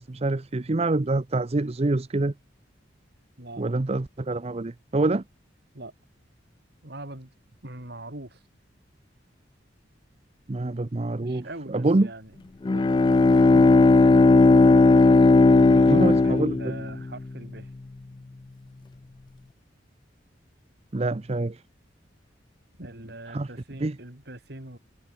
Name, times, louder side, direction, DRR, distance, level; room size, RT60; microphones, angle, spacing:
voice 1, 0.0-2.3 3.6-5.2 10.5-12.1 15.9-16.7 20.9-21.6 23.3-23.5 23.8-24.0, right 2 dB, 35° right, 0.6 m, -26 dB
voice 2, 6.8-7.3 7.6-8.4 11.2-12.3 12.6-12.9 13.3-13.7 14.0-14.2 15.5-17.7 22.8-24.8, right 1 dB, 60° right, 4.2 m, -41 dB
Bowed string instrument, 12.6-17.2, left 3 dB, 25° left, 0.3 m, -17 dB
head